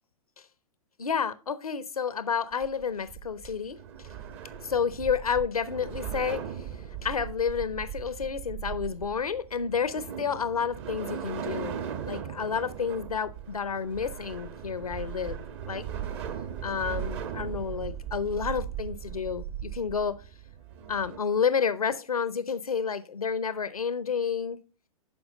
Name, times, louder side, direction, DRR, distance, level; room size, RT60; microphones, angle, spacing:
voice 1, 1.0-4.1 4.6-6.7 7.0-11.8 12.1-15.4 15.7-15.8 16.6-20.2 20.9-24.6, left 6 dB, 90° left, 0.6 m, -30 dB
sound 1, 2.5-21.2, right 9 dB, 50° right, 1.2 m, -38 dB
11.5 x 4.7 x 3.7 m
figure-of-eight pair, 115°, 18 cm